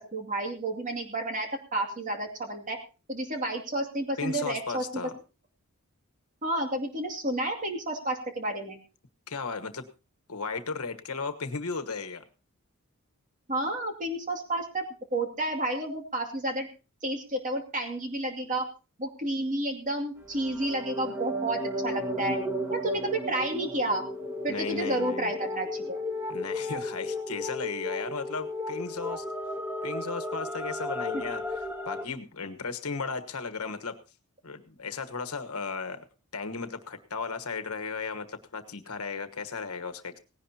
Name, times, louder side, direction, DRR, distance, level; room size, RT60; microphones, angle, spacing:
voice 1, 0.0-2.8 3.1-5.1 6.4-8.8 13.5-14.9 15.1-16.7 17.0-18.7 19.0-22.4 22.7-24.0 24.4-26.0 31.1-31.2, right 1 dB, 35° right, 3 dB, 2.5 m, -31 dB
voice 2, 4.2-5.2 9.3-9.9 10.3-12.2 24.5-25.3 26.3-29.2 29.8-34.0 34.4-36.0 36.3-40.2, left 4 dB, 80° left, 8 dB, 1.3 m, -35 dB
sound 1, 20.2-32.0, left 1 dB, 10° right, 1.3 m, -34 dB
18.0 x 16.5 x 2.9 m, 0.33 s
head